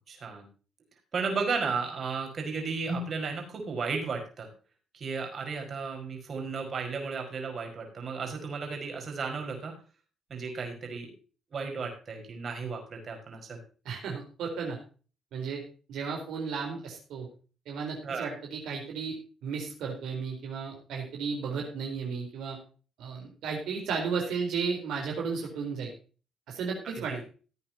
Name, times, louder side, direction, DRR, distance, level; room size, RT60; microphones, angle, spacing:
voice 1, 0.1-0.5 1.1-4.5 4.9-9.7 10.3-11.1 11.5-13.6 18.0-18.3 27.1-27.2, right 4 dB, 50° right, 3 dB, 5.2 m, -34 dB
voice 2, 13.8-14.8 15.3-15.6 15.9-17.3 17.7-19.1 19.4-22.6 23.0-25.9 26.5-27.2, right 5 dB, 80° right, 1 dB, 4.1 m, -34 dB
17.5 x 9.3 x 2.9 m, 0.36 s
cardioid pair, 90°, 0 cm